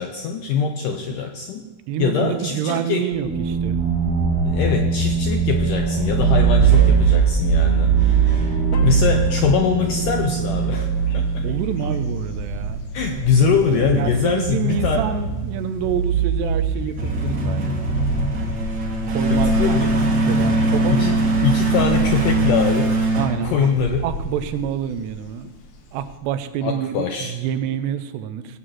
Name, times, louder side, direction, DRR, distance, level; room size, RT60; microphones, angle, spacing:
voice 1, 0.0-1.7 2.0-3.1 4.5-8.4 8.8-11.5 12.9-15.1 19.3-19.9 20.9-21.2 21.4-23.0 23.4-24.1 26.6-27.4, left 6 dB, 80° left, 4 dB, 1.9 m, -22 dB
voice 2, 1.9-3.8 6.8-6.9 11.4-12.8 13.1-17.9 19.1-21.2 23.2-23.7 24.0-25.5 25.9-28.6, right 9 dB, 90° right, 11 dB, 2.9 m, -28 dB
sound 1, 3.1-11.7, right 2 dB, 40° left, 1.3 m, -24 dB
sound 2, 6.0-24.2, right 5 dB, 60° right, 1.2 m, -21 dB
sound 3, 10.8-26.2, left 1 dB, 60° left, 2.3 m, -34 dB
18.5 x 6.4 x 7.6 m, 1.2 s
omnidirectional pair, 4.7 m